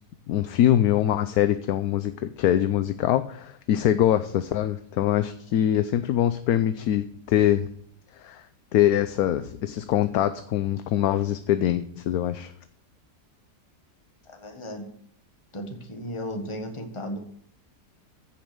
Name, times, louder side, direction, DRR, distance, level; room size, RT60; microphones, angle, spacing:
voice 1, 0.3-7.7 8.2-8.4 8.7-12.5, left 11 dB, 70° left, 11 dB, 1.0 m, -23 dB
voice 2, 14.2-14.9 15.5-17.2, equal, 20° left, 4 dB, 1.5 m, -35 dB
15.0 x 5.5 x 6.7 m, 0.66 s
omnidirectional pair, 1.8 m